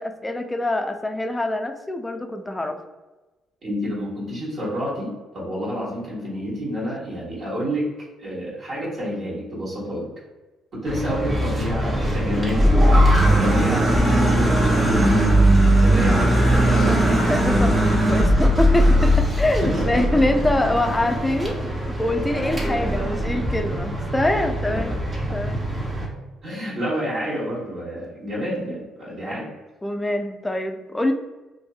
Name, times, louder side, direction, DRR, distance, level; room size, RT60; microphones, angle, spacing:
voice 1, 0.0-2.8 16.7-24.9 25.3-25.6 29.3-29.4 29.8-31.1, left 1 dB, 15° left, 6 dB, 0.3 m, -25 dB
voice 2, 3.6-7.9 8.2-10.1 10.7-12.7 13.4-15.3 15.8-17.2 19.6-20.2 20.6-21.1 22.6-23.5 24.7-24.9 26.4-29.5, equal, 60° right, -7 dB, 1.1 m, -29 dB
sound 1, 10.9-26.1, right 1 dB, 30° right, 0.8 m, -19 dB
2.5 x 2.5 x 2.4 m, 1.2 s
hypercardioid pair, 55°, 0 cm